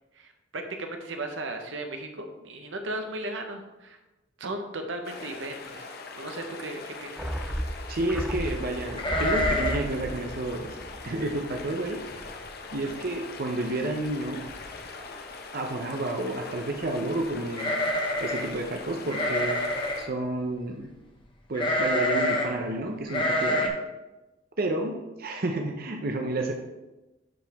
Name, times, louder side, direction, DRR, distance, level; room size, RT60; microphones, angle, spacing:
voice 1, 0.1-4.0 4.4-7.4 12.8-12.9, right 2 dB, 80° right, 5 dB, 1.0 m, -36 dB
sound 1, 5.0-20.1, left 4 dB, 55° left, 0.9 m, -42 dB
sound 2, 7.2-11.8 12.0-12.1, equal, 5° right, 0.4 m, -34 dB
voice 2, 7.9-10.8 11.0-12.0 12.7-14.5 15.5-17.8 18.2-19.6 20.0-20.9 21.5-23.8 24.6-26.5, right 2 dB, 55° right, 3 dB, 0.7 m, -30 dB
sound 3, 9.0-9.9 10.2-10.3 10.7-11.0 11.6-11.7 12.0-12.5 12.8-12.9 14.0-14.1 14.4-14.9 17.5-18.5 19.1-20.1 21.5-22.5 23.1-23.7, left 1 dB, 25° left, 1.0 m, -27 dB
11.5 x 4.9 x 3.5 m, 1.1 s
head